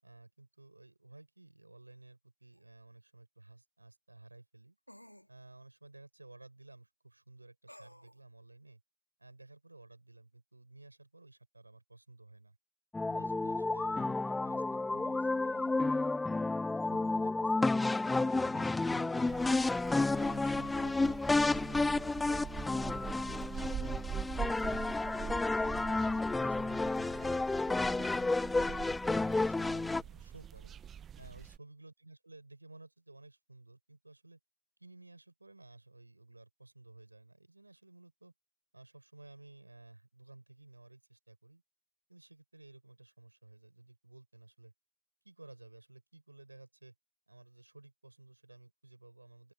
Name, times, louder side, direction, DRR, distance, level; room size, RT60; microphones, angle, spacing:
voice 1, 0.0-4.8 5.3-8.8 9.2-12.6 13.1-16.5 16.9-19.7 20.2-22.8 23.2-24.0 24.3-26.0 26.3-27.5 27.9-30.7 31.2-34.4 34.8-38.3 38.7-41.6 42.1-44.7 45.2-46.9 47.3-49.5, right 2 dB, 85° right, 7.3 m, -56 dB
sound 1, 2.5-2.6 4.9-5.3 7.7-8.2, equal, 90° left, 3.2 m, -54 dB
sound 2, 12.9-30.0, left 3 dB, 10° left, 0.4 m, -31 dB
sound 3, 19.3-31.6, right 9 dB, 25° right, 0.7 m, -44 dB
open air
figure-of-eight pair, 90°, 0 cm